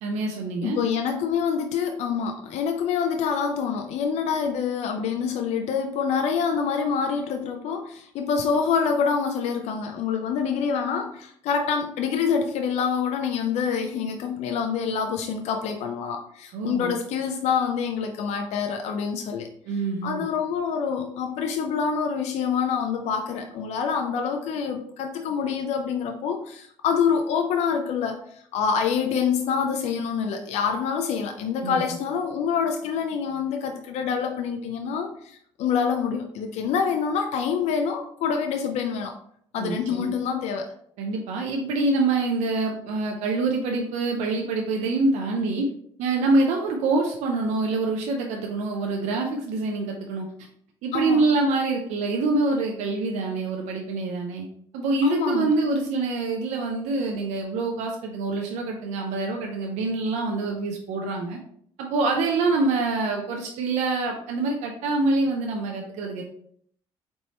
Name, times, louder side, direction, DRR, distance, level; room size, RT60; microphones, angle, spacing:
voice 1, 0.0-0.8 16.5-17.0 19.7-20.3 31.6-31.8 39.6-40.1 41.0-45.7 46.0-50.3 50.8-54.5 54.7-61.4 61.8-66.2, right 3 dB, 85° right, 1 dB, 0.6 m, -25 dB
voice 2, 0.6-19.5 20.0-28.2 28.5-39.1 39.5-40.7 50.9-51.2 55.0-55.5, left 6 dB, 75° left, 4 dB, 0.5 m, -26 dB
4.2 x 3.4 x 2.9 m, 0.64 s
cardioid pair, 90°, 12 cm